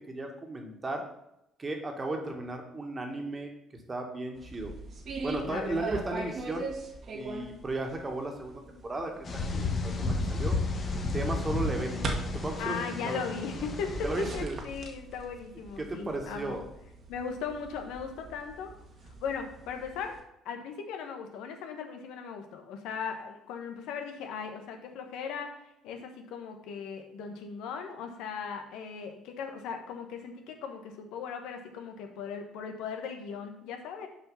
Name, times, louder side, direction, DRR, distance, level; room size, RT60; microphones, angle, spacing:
voice 1, 0.1-1.1 1.6-4.7 5.2-6.7 7.1-10.6 11.1-12.1 12.3-13.2 14.0-14.6 15.8-16.6, right 2 dB, 30° right, 3 dB, 1.8 m, -35 dB
sound 1, 4.4-20.2, right 2 dB, 50° right, 1.5 m, -41 dB
voice 2, 5.4-5.8 12.6-13.9 14.3-16.6 17.1-18.7 19.1-20.2 20.4-25.5 25.8-34.1, left 6 dB, 75° left, 5 dB, 1.2 m, -38 dB
sound 2, 9.3-14.4, left 3 dB, 45° left, 1.4 m, -32 dB
6.2 x 5.2 x 5.6 m, 0.84 s
supercardioid pair, 65°, 0 cm